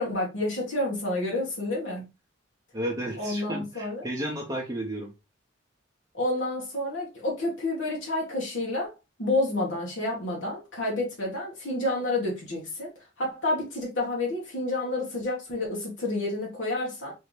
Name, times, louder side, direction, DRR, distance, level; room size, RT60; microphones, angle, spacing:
voice 1, 0.0-2.1 3.2-4.0 6.1-8.9 9.2-12.9 13.2-17.1, left 2 dB, 85° left, 1.4 m, -29 dB
voice 2, 2.7-5.1, right 1 dB, 20° right, 0.7 m, -33 dB
4.3 x 2.7 x 3.2 m
head